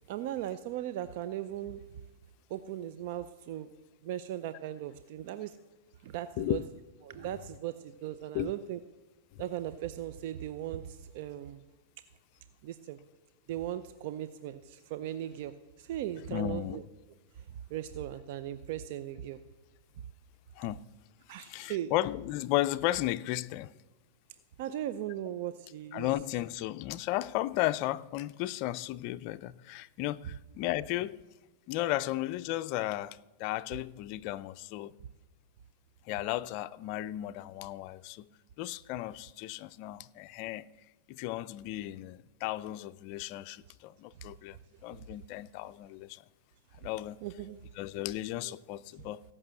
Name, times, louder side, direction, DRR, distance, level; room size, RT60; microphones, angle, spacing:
voice 1, 0.1-1.8 2.5-3.7 4.0-5.6 6.0-6.6 7.0-8.8 9.4-11.6 12.6-13.0 13.5-16.8 17.7-19.4 21.3-21.9 24.6-26.1 47.2-47.6 48.4-48.5, right 12 dB, 55° right, 0.6 m, -38 dB
voice 2, 16.3-16.8 20.6-20.8 21.4-23.7 25.9-31.2 31.7-34.9 36.1-38.3 38.6-40.7 41.1-44.6 44.8-46.2 46.8-47.2 47.8-49.2, left 15 dB, 45° left, 0.4 m, -34 dB
16.5 x 6.1 x 7.7 m
hypercardioid pair, 130°, 0 cm